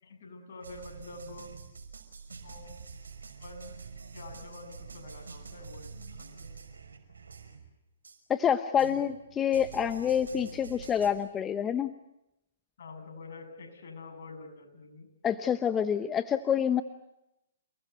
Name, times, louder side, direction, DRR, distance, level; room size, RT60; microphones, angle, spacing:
voice 1, 0.0-1.5 2.4-2.8 3.4-3.7 4.1-6.5 12.8-15.1, left 3 dB, 65° left, 4 dB, 7.5 m, -47 dB
sound 1, 0.6-7.7 8.0-8.2 8.8-11.1, right 5 dB, 85° right, 5.8 m, -47 dB
voice 2, 8.3-11.9 15.2-16.8, left 8 dB, 15° left, 11 dB, 1.0 m, -27 dB
29.0 x 20.0 x 8.2 m, 0.87 s
hypercardioid pair, 135°, 0 cm